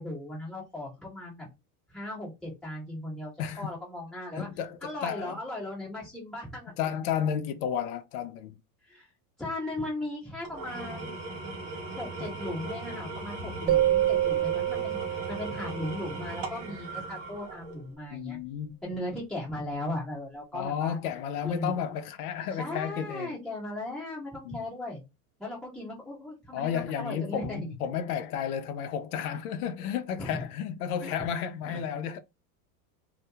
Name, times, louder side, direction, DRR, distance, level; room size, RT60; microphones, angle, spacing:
voice 1, 0.0-1.5 1.9-4.5 4.8-6.7 8.9-9.1 9.4-11.1 11.9-18.4 18.8-21.0 21.4-21.8 22.6-25.0 25.4-27.7 30.2-30.4 31.0-31.1 31.7-31.8, left 1 dB, ahead, 1.3 m, -37 dB
voice 2, 3.4-3.7 4.4-5.4 6.8-8.6 18.1-18.8 20.5-23.4 24.4-24.6 26.5-32.2, left 8 dB, 80° left, 0.6 m, -32 dB
Engine / Tools, 10.4-17.9, right 3 dB, 20° right, 0.3 m, -38 dB
sound 1, 13.7-16.3, right 13 dB, 70° right, 0.8 m, -27 dB
2.8 x 2.2 x 3.4 m
supercardioid pair, 160°, 44 cm